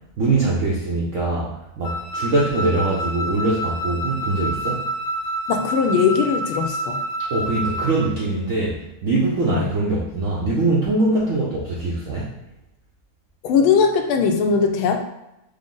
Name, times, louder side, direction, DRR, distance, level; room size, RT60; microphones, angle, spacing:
voice 1, 0.2-4.9 7.2-12.3, right 2 dB, 85° right, -6 dB, 0.6 m, -22 dB
Wind instrument woodwind instrument, 1.8-8.1, right 1 dB, 65° left, 1.0 m, -28 dB
voice 2, 5.5-7.0 9.5-9.7 13.4-15.0, left 6 dB, 90° left, 4 dB, 1.4 m, -19 dB
5.0 x 2.0 x 3.7 m, 0.88 s
omnidirectional pair, 2.2 m